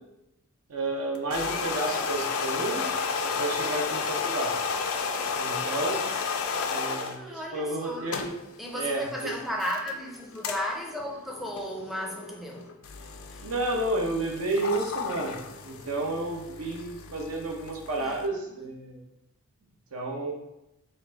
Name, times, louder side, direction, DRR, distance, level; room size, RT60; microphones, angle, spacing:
voice 1, 0.7-2.8 3.2-4.6 5.4-6.1 6.7-8.3 8.7-9.3 13.4-19.0 19.9-20.3, right 2 dB, 70° right, 0.7 m, -31 dB
sound 1, 1.2-7.2 7.8-18.3, left 5 dB, 65° left, 0.4 m, -33 dB
voice 2, 7.1-8.3 8.6-12.7 13.3-13.4 18.0-18.2 18.5-18.6, equal, ahead, 0.5 m, -35 dB
4.3 x 2.4 x 3.9 m
head